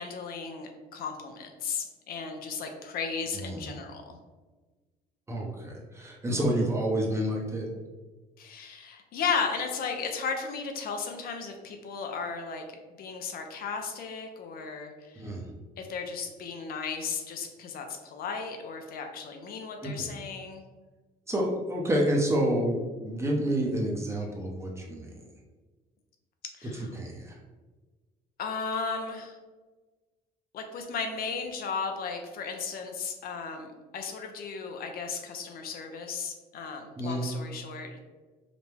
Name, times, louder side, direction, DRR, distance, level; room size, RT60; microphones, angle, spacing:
voice 1, 0.0-4.2 8.4-12.6 13.0-15.3 15.8-20.6 26.6-26.9 28.4-29.4 30.5-38.0, left 5 dB, 60° left, 4 dB, 0.6 m, -35 dB
voice 2, 5.3-7.7 15.2-15.4 19.8-20.1 21.3-25.1 26.9-27.4 37.0-37.2, right 1 dB, 15° right, -1 dB, 0.8 m, -29 dB
5.0 x 2.2 x 3.3 m, 1.3 s
cardioid pair, 110°, 17 cm